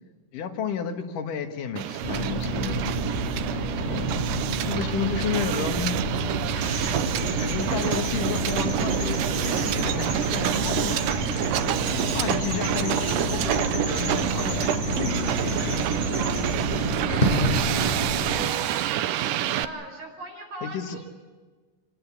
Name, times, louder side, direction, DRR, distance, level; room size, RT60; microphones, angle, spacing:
voice 1, 0.3-2.9 3.8-4.3 4.6-6.0 7.4-11.0 11.5-16.1 20.6-21.0, left 7 dB, 85° left, 6 dB, 3.1 m, -32 dB
Hiss, 1.8-19.6, right 12 dB, 90° right, 2.5 m, -28 dB
sound 1, 2.0-18.4, right 1 dB, 15° left, 6.5 m, -29 dB
voice 2, 3.8-4.3 19.3-21.1, right 1 dB, 70° right, 3 dB, 6.4 m, -41 dB
sound 2, 6.6-16.6, right 1 dB, 35° right, 7.9 m, -34 dB
27.0 x 20.5 x 7.2 m, 1.4 s
omnidirectional pair, 3.6 m